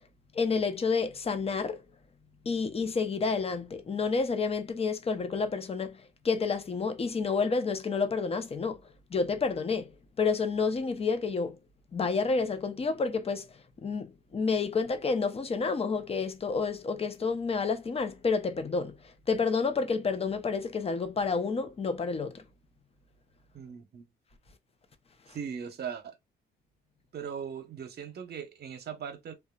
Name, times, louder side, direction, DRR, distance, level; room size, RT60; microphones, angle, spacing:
voice 1, 0.3-1.8 2.4-8.8 9.1-9.9 10.2-11.6 11.9-13.5 13.8-22.4, left 4 dB, 30° left, 0.6 m, -29 dB
voice 2, 23.5-24.1 25.3-26.1 27.1-29.3, right 7 dB, 55° right, 0.8 m, -39 dB
2.8 x 2.3 x 2.3 m
cardioid pair, 90°, 20 cm